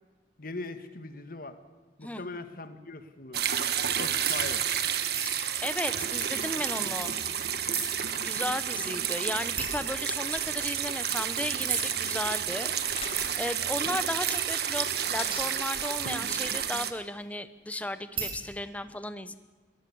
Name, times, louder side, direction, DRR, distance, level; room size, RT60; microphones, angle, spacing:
voice 1, 0.4-1.6 2.0-3.4 4.0-4.7, left 3 dB, 50° left, 9 dB, 1.7 m, -40 dB
sound 1, 3.3-16.9, right 9 dB, 60° right, 1.5 m, -30 dB
sound 2, 4.2-4.4 5.1-5.4 6.1-7.4 7.7-7.9 8.3-8.4 8.8-8.9 9.6-9.8 10.4-10.5 11.7-11.9 13.2-13.3 14.3-14.5 15.0-16.5 18.2-18.4, right 5 dB, 30° right, 6.2 m, -36 dB
voice 2, 5.2-7.2 8.2-19.4, left 1 dB, 10° left, 12 dB, 0.9 m, -35 dB
sound 3, 12.9-13.8 15.0-15.9, left 4 dB, 35° left, 3.1 m, -43 dB
21.5 x 19.0 x 7.1 m, 1.3 s
head